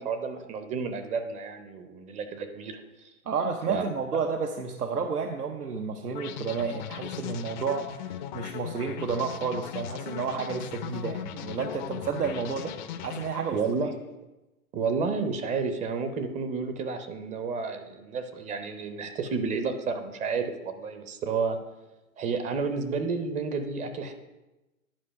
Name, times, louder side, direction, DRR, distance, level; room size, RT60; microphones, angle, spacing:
voice 1, 0.0-3.1 3.7-3.8 13.5-14.1 14.7-21.6 22.2-24.1, right 5 dB, 15° right, 8 dB, 0.6 m, -31 dB
voice 2, 3.3-12.7 13.0-13.6, right 5 dB, 85° right, 3 dB, 0.9 m, -31 dB
sound 1, 6.1-13.8, left 10 dB, 35° left, 0.5 m, -38 dB
10.5 x 4.8 x 5.6 m, 1.0 s
hypercardioid pair, 115°, 44 cm